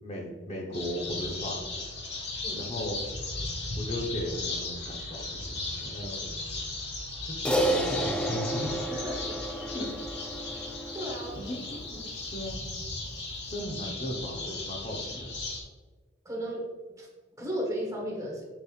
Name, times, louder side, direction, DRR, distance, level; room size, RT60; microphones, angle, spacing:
voice 1, 0.0-1.6 2.5-3.0 3.8-6.3 7.3-8.8 9.7-9.9 11.4-12.6 13.5-15.3, left 1 dB, 35° left, -1 dB, 1.0 m, -36 dB
sound 1, 0.7-15.6, left 2 dB, 60° left, 1.5 m, -36 dB
Crash cymbal, 7.4-12.0, right 1 dB, 5° left, 0.4 m, -31 dB
voice 2, 8.9-9.4 10.9-11.5 16.2-16.6 17.0-17.1 17.4-18.5, equal, 15° right, -1 dB, 1.2 m, -35 dB
7.0 x 5.7 x 2.5 m, 1.4 s
head